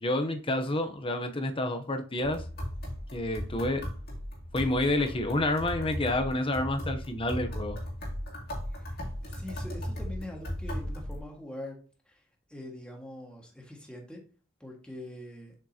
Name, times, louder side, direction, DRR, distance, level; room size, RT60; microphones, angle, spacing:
voice 1, 0.0-2.4 3.1-3.8 4.5-7.8, left 1 dB, 25° left, 7 dB, 0.8 m, -29 dB
sound 1, 2.2-11.2, equal, 50° left, 2.3 m, -37 dB
voice 2, 9.2-11.8 12.1-12.2 12.5-14.2 14.6-15.5, left 1 dB, 5° left, -1 dB, 1.7 m, -43 dB
7.3 x 5.2 x 2.8 m, 0.38 s
head